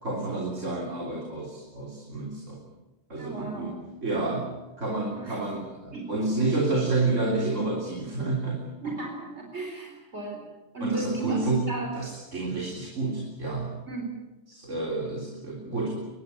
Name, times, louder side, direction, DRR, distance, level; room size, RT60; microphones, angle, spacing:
voice 1, 0.0-2.6 3.1-4.5 4.8-8.9 10.8-13.8 14.5-16.1, right 2 dB, 80° right, -1 dB, 4.0 m, -29 dB
voice 2, 3.2-3.8 5.1-5.4 5.9-6.3 8.8-10.4 10.7-11.9 13.8-14.1, right 3 dB, 60° right, 1 dB, 4.4 m, -34 dB
24.5 x 21.0 x 8.5 m, 1.1 s
omnidirectional pair, 1.3 m